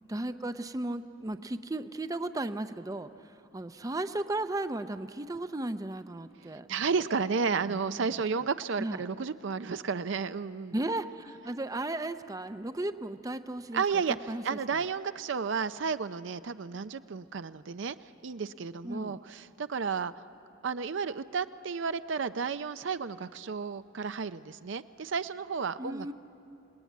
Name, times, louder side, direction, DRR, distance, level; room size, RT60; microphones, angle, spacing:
voice 1, 0.1-6.7 7.7-8.2 8.8-9.1 10.7-14.0 14.3-14.9 18.8-19.2 25.8-26.1, right 2 dB, 15° right, 10 dB, 0.5 m, -35 dB
voice 2, 6.7-10.7 13.7-14.2 14.4-20.1 20.6-26.1, right 5 dB, 65° right, 12 dB, 0.5 m, -32 dB
27.5 x 19.0 x 9.3 m, 2.7 s
head